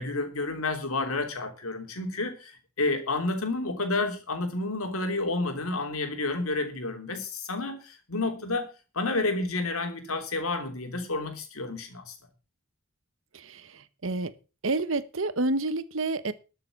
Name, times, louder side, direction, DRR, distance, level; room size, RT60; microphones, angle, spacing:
voice 1, 0.0-8.7 8.9-12.2, left 2 dB, 85° left, 6 dB, 3.3 m, -30 dB
voice 2, 13.3-14.3 14.6-16.3, right 2 dB, 70° right, 15 dB, 1.1 m, -29 dB
13.0 x 6.9 x 7.3 m, 0.33 s
head